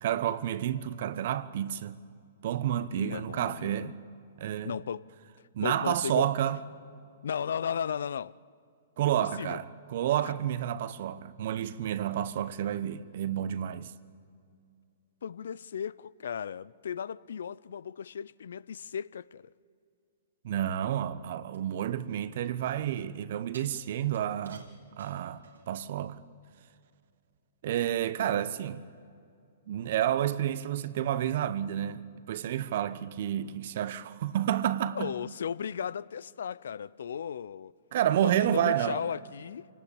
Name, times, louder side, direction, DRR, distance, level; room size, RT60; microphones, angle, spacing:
voice 1, 0.0-2.0 2.4-3.9 4.4-4.7 5.5-6.6 9.0-13.9 20.4-24.7 25.0-26.2 27.6-28.8 29.7-35.1 37.9-39.0, right 11 dB, 60° right, 1.0 m, -30 dB
voice 2, 2.9-4.0 4.6-5.0 5.6-6.3 7.2-8.4 9.4-9.6 15.2-19.5 34.9-37.7 38.2-39.7, left 8 dB, 75° left, 0.5 m, -36 dB
sound 1, 21.5-22.7 23.5-25.9 26.3-26.4, right 5 dB, 90° right, 3.4 m, -55 dB
26.5 x 18.0 x 8.7 m
hypercardioid pair, 125°, 0 cm